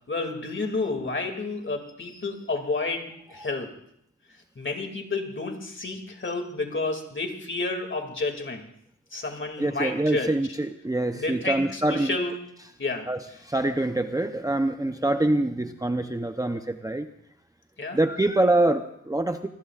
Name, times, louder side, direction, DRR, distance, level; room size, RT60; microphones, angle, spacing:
voice 1, 0.1-3.7 4.6-8.7 9.1-10.3 11.1-12.3 12.8-13.1 17.8-18.0, left 3 dB, 40° left, 4 dB, 2.5 m, -30 dB
voice 2, 9.6-12.2 13.1-17.1 17.9-19.5, right 2 dB, 10° right, 6 dB, 0.7 m, -25 dB
27.0 x 20.0 x 2.5 m, 0.71 s
wide cardioid pair, 125°, 30 cm